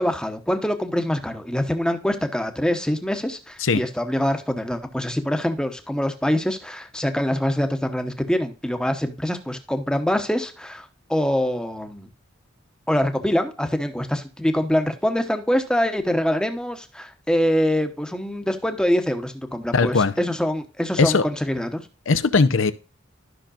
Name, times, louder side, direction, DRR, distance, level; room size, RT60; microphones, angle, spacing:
voice 1, 0.0-12.1 12.9-21.8, equal, 5° left, 0.9 m, -24 dB
voice 2, 19.7-20.1 21.0-21.2 22.1-22.7, left 4 dB, 75° left, 0.7 m, -19 dB
13.0 x 5.9 x 2.5 m
head